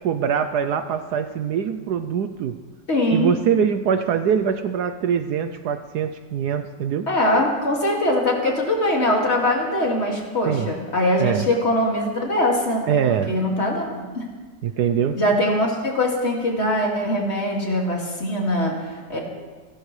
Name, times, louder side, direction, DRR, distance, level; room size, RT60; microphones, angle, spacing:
voice 1, 0.0-2.6 3.1-7.1 10.4-10.7 11.2-11.5 12.9-13.3 14.6-15.2, right 8 dB, 70° right, 9 dB, 1.1 m, -23 dB
voice 2, 2.9-3.3 7.1-14.2 15.1-19.2, left 1 dB, 35° left, -1 dB, 2.5 m, -22 dB
28.0 x 11.5 x 3.2 m, 1.4 s
omnidirectional pair, 1.9 m